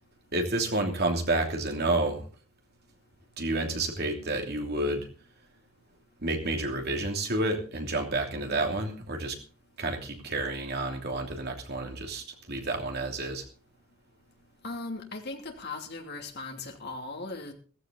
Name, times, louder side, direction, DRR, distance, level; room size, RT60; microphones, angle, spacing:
voice 1, 0.3-2.3 3.4-5.1 6.2-9.4 9.8-13.4, right 2 dB, 45° right, 3 dB, 2.9 m, -30 dB
voice 2, 14.6-17.5, left 3 dB, 50° left, 3 dB, 2.8 m, -38 dB
15.0 x 14.5 x 4.0 m, 0.37 s
head